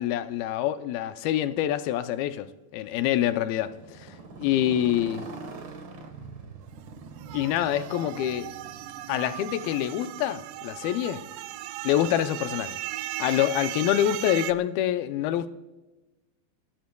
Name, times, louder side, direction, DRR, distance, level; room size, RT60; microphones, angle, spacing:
voice 1, 0.0-2.5 2.7-5.3 7.3-8.5 9.1-11.2 11.8-12.8 13.2-15.5, left 12 dB, 80° left, 2.5 m, -26 dB
Motorcycle, 3.5-11.6, right 3 dB, 65° right, 1.2 m, -44 dB
sound 1, 7.1-14.5, right 14 dB, 80° right, 2.0 m, -37 dB
29.0 x 14.0 x 2.3 m
omnidirectional pair, 4.3 m